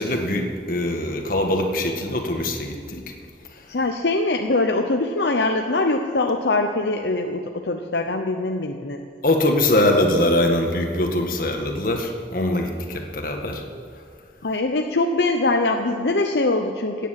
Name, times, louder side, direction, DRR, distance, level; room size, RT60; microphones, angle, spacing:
voice 1, 0.0-3.0 9.2-13.6, left 1 dB, 50° left, 3 dB, 1.8 m, -22 dB
voice 2, 3.7-9.0 14.4-17.1, left 2 dB, 75° left, 4 dB, 0.8 m, -22 dB
16.5 x 9.3 x 7.6 m, 2.2 s
head